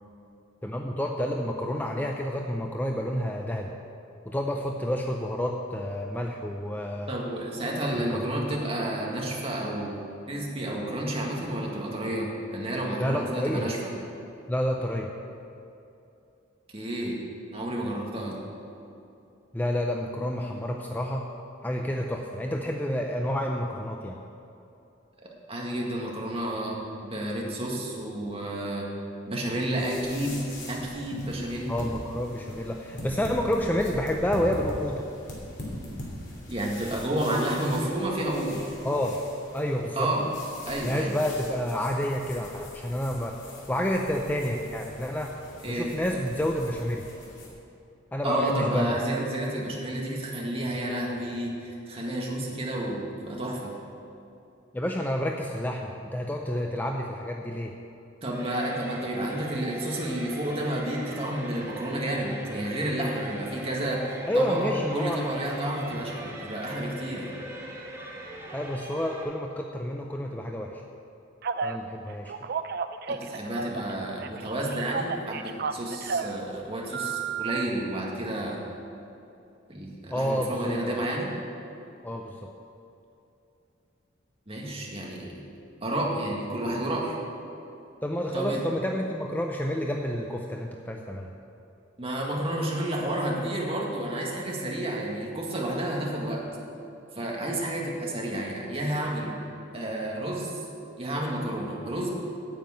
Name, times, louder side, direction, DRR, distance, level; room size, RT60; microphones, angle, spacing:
voice 1, 0.6-3.7 4.3-7.1 8.1-8.4 13.0-13.7 14.5-15.1 19.5-21.3 21.6-24.2 31.7-35.1 38.8-39.2 39.5-40.1 40.8-45.3 45.7-47.0 48.1-49.0 54.7-57.7 64.3-65.2 68.5-70.8 71.6-72.3 80.1-81.0 82.0-82.3 88.0-91.3, equal, 10° left, 1 dB, 0.5 m, -29 dB
voice 2, 7.1-9.9 10.3-13.9 16.7-17.2 17.5-18.4 25.5-28.9 29.3-30.4 30.7-31.7 36.5-38.6 40.0-40.3 40.7-41.2 45.6-45.9 48.2-53.7 58.2-67.3 73.1-78.6 79.7-81.3 84.5-85.4 85.8-87.1 88.3-88.6 92.0-96.4 97.1-99.4 99.7-100.6 101.0-102.1, right 1 dB, 30° right, -2 dB, 1.8 m, -30 dB
sound 1, 29.7-47.5, left 1 dB, 60° left, 3.0 m, -42 dB
sound 2, 58.3-69.2, right 1 dB, 15° right, 1.7 m, -41 dB
Telephone, 71.4-71.8 72.3-73.9 74.2-76.4 76.9-77.6, right 6 dB, 50° right, 0.5 m, -32 dB
9.3 x 7.4 x 9.0 m, 2.8 s
head